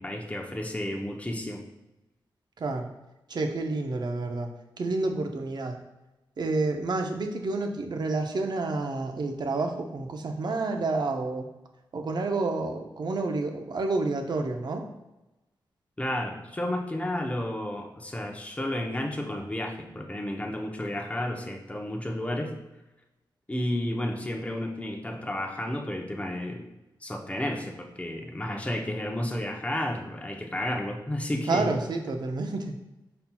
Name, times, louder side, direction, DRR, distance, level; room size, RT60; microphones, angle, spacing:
voice 1, 0.0-1.6 16.0-22.5 23.5-26.7 27.0-31.7, left 1 dB, 15° left, 2 dB, 0.7 m, -32 dB
voice 2, 2.6-2.9 3.3-4.5 4.8-5.8 6.4-11.5 11.9-14.8 31.5-32.8, right 3 dB, 55° right, 4 dB, 0.6 m, -29 dB
5.4 x 4.3 x 2.2 m, 0.99 s
cardioid pair, 75°, 9 cm